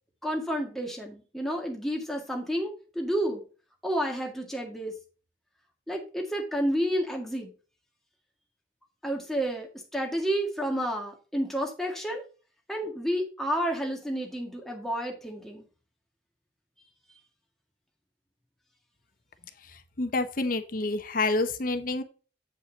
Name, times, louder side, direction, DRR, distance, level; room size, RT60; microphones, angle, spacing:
voice 1, 0.2-3.4 3.8-5.0 5.9-7.5 9.0-12.2 12.7-15.6, equal, ahead, 1 dB, 1.9 m, -30 dB
voice 2, 20.0-22.0, left 2 dB, 50° left, 9 dB, 0.8 m, -28 dB
8.2 x 5.4 x 4.0 m, 0.36 s
head